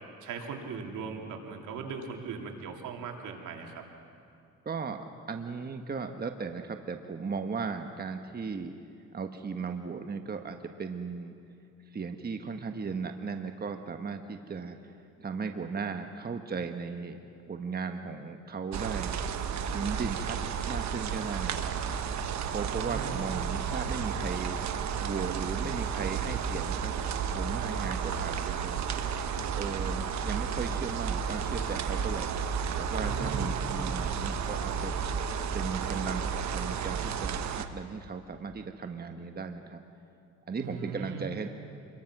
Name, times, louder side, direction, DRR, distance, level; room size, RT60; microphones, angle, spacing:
voice 1, 0.2-3.8 22.6-23.4 33.0-33.5 40.6-41.3, right 5 dB, 80° right, 2 dB, 2.8 m, -39 dB
voice 2, 4.6-8.7 9.1-11.3 11.9-14.9 15.2-19.1 19.7-21.7 22.5-24.6 25.0-27.0 27.3-28.8 29.6-32.3 32.8-34.9 35.5-39.8 40.5-41.5, right 5 dB, 30° right, 6 dB, 1.3 m, -36 dB
sound 1, 18.7-37.6, right 7 dB, 65° right, 1.3 m, -32 dB
27.0 x 22.5 x 6.1 m, 2.5 s
cardioid pair, 90°, 30 cm